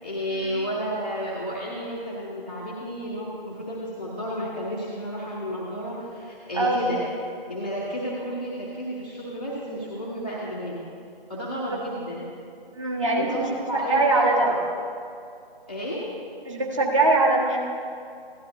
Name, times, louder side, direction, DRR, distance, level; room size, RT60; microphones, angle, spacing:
voice 1, 0.0-7.0 7.5-10.8 11.3-12.3 13.2-14.6 15.7-16.1, equal, 10° left, -11 dB, 0.6 m, -32 dB
voice 2, 12.7-13.4 13.9-14.5 16.5-17.6, right 2 dB, 30° right, -2 dB, 1.6 m, -22 dB
15.5 x 12.0 x 2.7 m, 2.4 s
figure-of-eight pair, 160°, 30 cm